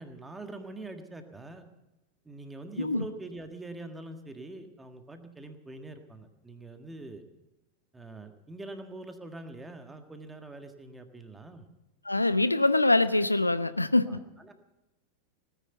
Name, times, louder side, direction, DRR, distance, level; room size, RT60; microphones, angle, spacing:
voice 1, 0.0-1.6 2.2-7.2 7.9-11.7 14.1-14.5, right 2 dB, 10° right, 7 dB, 1.6 m, -44 dB
voice 2, 12.1-14.1, left 2 dB, 85° left, 14 dB, 0.6 m, -24 dB
18.0 x 10.0 x 7.9 m, 0.98 s
figure-of-eight pair, 90°, 0 cm